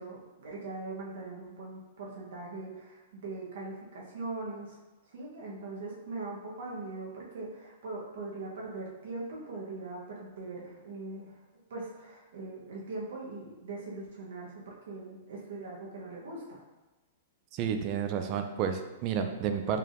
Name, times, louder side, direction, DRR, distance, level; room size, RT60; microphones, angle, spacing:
voice 1, 0.0-4.8 5.1-11.4 11.7-16.6, right 3 dB, 70° right, -3 dB, 1.0 m, -41 dB
voice 2, 17.5-19.8, right 7 dB, 30° right, 6 dB, 0.4 m, -31 dB
4.5 x 3.4 x 2.5 m, 1.1 s
supercardioid pair, 165°, 0 cm